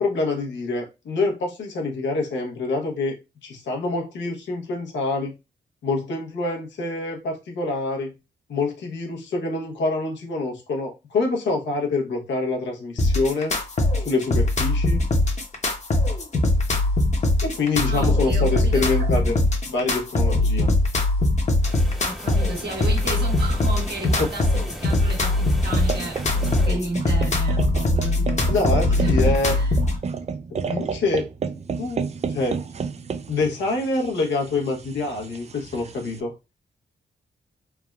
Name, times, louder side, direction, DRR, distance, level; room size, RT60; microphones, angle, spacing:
voice 1, 0.0-3.2 3.4-5.3 5.8-8.1 8.5-13.5 14.0-15.0 17.4-20.7 24.2-24.3 28.4-29.6 30.7-31.3 31.8-32.6 33.3-36.3, left 3 dB, 80° left, 0.9 m, -26 dB
sound 1, 13.0-30.0, left 2 dB, 40° left, 0.9 m, -21 dB
voice 2, 17.8-19.4 22.0-29.8, right 2 dB, 60° right, 1.4 m, -33 dB
sound 2, 21.6-26.7, equal, ahead, 0.8 m, -38 dB
sound 3, 25.7-36.2, right 5 dB, 35° right, 0.4 m, -31 dB
3.4 x 2.2 x 2.3 m
cardioid pair, 55°, 19 cm